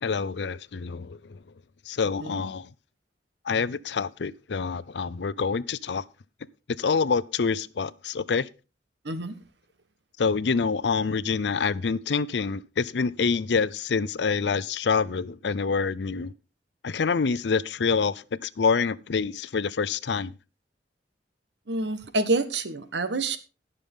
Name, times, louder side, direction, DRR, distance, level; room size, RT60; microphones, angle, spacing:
voice 1, 0.0-1.4 1.9-2.7 3.5-6.0 6.8-8.5 10.2-16.3 16.8-20.3, left 5 dB, 80° left, 0.5 m, -26 dB
voice 2, 21.7-23.4, right 2 dB, 80° right, 1.3 m, -27 dB
19.5 x 6.8 x 3.6 m
head